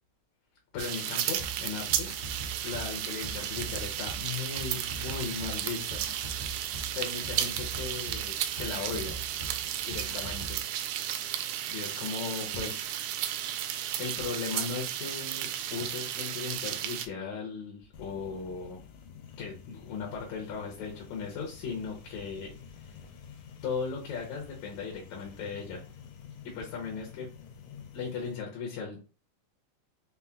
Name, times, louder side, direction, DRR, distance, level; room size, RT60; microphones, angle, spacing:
voice 1, 0.7-2.2 2.6-6.0 6.9-9.1 9.9-10.6 11.7-13.0 13.4-13.7 14.0-18.8 19.4-23.0 23.6-25.8 26.4-27.3 27.9-29.0, left 5 dB, 70° left, 0 dB, 2.1 m, -37 dB
sound 1, 0.8-17.1, right 11 dB, 90° right, 2.1 m, -34 dB
sound 2, 1.3-10.6, right 3 dB, 15° left, 0.8 m, -42 dB
sound 3, 17.9-28.4, left 6 dB, 90° left, 2.2 m, -49 dB
5.7 x 2.1 x 3.5 m, 0.35 s
omnidirectional pair, 3.6 m